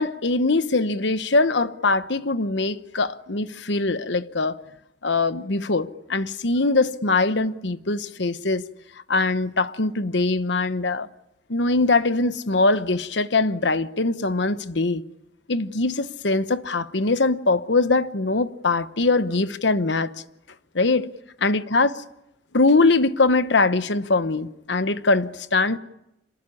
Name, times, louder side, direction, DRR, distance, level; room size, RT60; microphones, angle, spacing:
voice 1, 0.0-4.6 5.0-8.6 9.1-11.1 11.5-15.0 15.5-20.1 20.7-21.1 21.4-21.9 22.5-25.8, left 3 dB, 65° left, 1.1 m, -22 dB
26.5 x 20.0 x 9.9 m
head